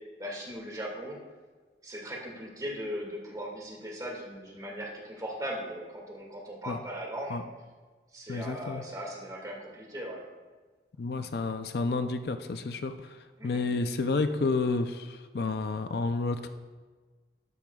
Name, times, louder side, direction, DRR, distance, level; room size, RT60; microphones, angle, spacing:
voice 1, 0.2-1.2 1.8-7.4 8.1-10.2 13.4-13.6, equal, 20° right, -2 dB, 2.0 m, -38 dB
voice 2, 8.3-8.8 11.0-16.5, left 3 dB, 60° left, 8 dB, 0.5 m, -30 dB
12.5 x 10.5 x 2.3 m, 1.4 s
head